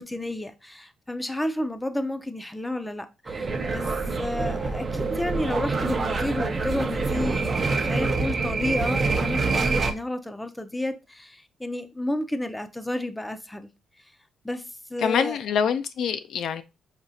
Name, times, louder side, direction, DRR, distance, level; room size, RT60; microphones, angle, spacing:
voice 1, 0.0-3.9 4.2-13.7 14.4-14.6 14.9-15.4, left 1 dB, 10° left, 0.5 m, -31 dB
sound 1, 3.3-9.9, right 3 dB, 35° right, 0.6 m, -26 dB
voice 2, 15.0-16.6, left 7 dB, 70° left, 0.4 m, -25 dB
4.9 x 2.9 x 2.7 m
cardioid pair, 90°, 0 cm